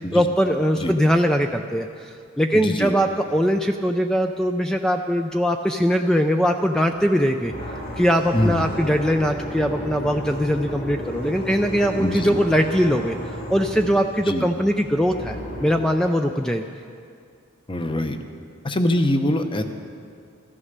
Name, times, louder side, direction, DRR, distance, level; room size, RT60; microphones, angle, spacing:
voice 1, 0.0-7.5 8.0-13.2 13.5-16.7, equal, 5° left, 5 dB, 0.4 m, -21 dB
voice 2, 2.5-2.9 8.3-8.6 12.0-12.4 14.3-14.5 17.7-18.2 18.6-19.6, left 1 dB, 25° left, 7 dB, 0.9 m, -23 dB
sound 1, 6.9-15.9, equal, 45° left, 4.2 m, -33 dB
14.5 x 13.0 x 6.6 m, 2.3 s
head